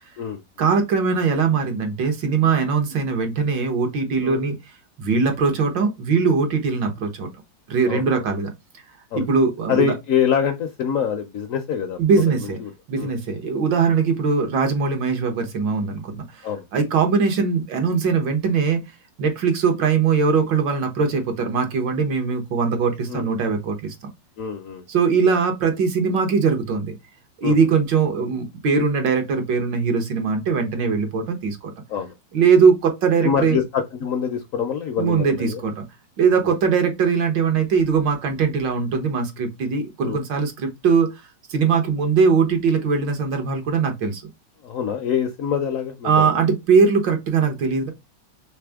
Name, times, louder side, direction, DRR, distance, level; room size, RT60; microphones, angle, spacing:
voice 1, 0.6-4.6 5.0-7.3 7.7-8.5 9.1-9.9 12.0-12.6 12.9-18.8 19.2-23.9 24.9-26.9 27.4-31.7 32.3-33.6 35.0-35.8 36.2-41.1 41.5-44.2 46.0-47.9, right 5 dB, 80° right, 1.8 m, -21 dB
voice 2, 9.7-12.7 13.0-13.1 16.4-16.6 23.1-23.3 24.4-24.8 27.4-27.6 31.9-32.1 33.2-35.6 36.4-36.5 40.0-40.2 44.6-46.3, left 7 dB, 70° left, 0.8 m, -25 dB
4.1 x 3.4 x 3.4 m
omnidirectional pair, 1.9 m